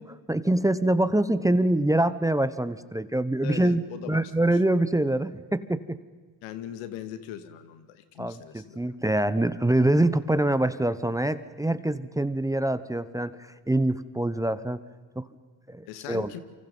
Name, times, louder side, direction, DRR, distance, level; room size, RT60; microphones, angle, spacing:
voice 1, 0.0-3.8 4.1-6.0 8.2-13.4 13.7-14.8 15.2-15.3 15.7-16.3, right 1 dB, 5° right, 14 dB, 0.9 m, -25 dB
voice 2, 3.4-4.3 6.4-8.8 15.9-16.4, left 10 dB, 80° left, 11 dB, 2.3 m, -39 dB
28.5 x 25.0 x 5.5 m, 1.4 s
supercardioid pair, 85°, 50 cm